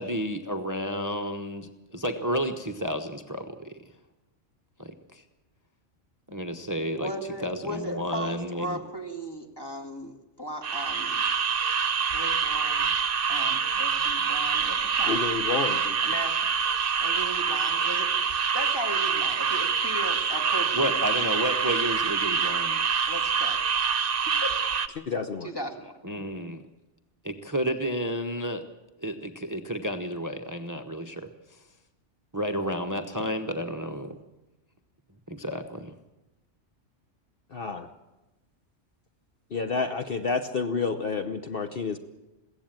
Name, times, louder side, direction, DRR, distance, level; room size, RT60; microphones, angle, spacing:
voice 1, 0.0-3.8 4.8-5.2 6.3-7.1 7.4-8.8 20.7-22.9 26.0-26.6 27.2-28.6 29.0-31.3 32.3-34.2 35.3-35.9, equal, 15° right, 6 dB, 1.0 m, -31 dB
voice 2, 7.0-11.2 12.1-12.9 13.3-15.2 16.0-16.5 17.0-21.3 23.1-23.6 24.4-24.5 25.4-25.9, equal, 20° left, 3 dB, 2.2 m, -37 dB
sound 1, 10.6-24.9, right 6 dB, 50° right, 1.1 m, -26 dB
voice 3, 15.0-16.0 25.0-25.5 37.5-37.9 39.5-42.0, left 5 dB, 50° left, 7 dB, 1.1 m, -29 dB
22.0 x 16.5 x 8.9 m, 1.0 s
omnidirectional pair, 1.3 m